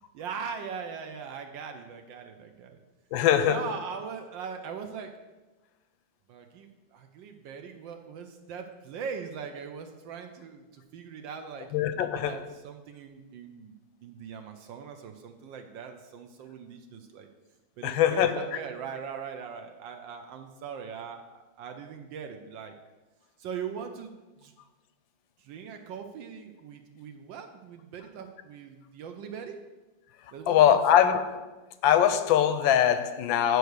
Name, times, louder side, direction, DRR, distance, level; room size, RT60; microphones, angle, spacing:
voice 1, 0.1-2.8 3.4-5.1 6.3-13.8 14.0-17.3 17.8-22.7 23.4-24.5 25.4-29.6 30.3-31.1, right 6 dB, 75° right, 1.4 m, -40 dB
voice 2, 3.1-3.6 11.7-12.4 17.8-18.5 30.5-31.5 31.8-33.6, left 10 dB, 90° left, 1.4 m, -22 dB
8.2 x 4.7 x 6.5 m
omnidirectional pair, 2.1 m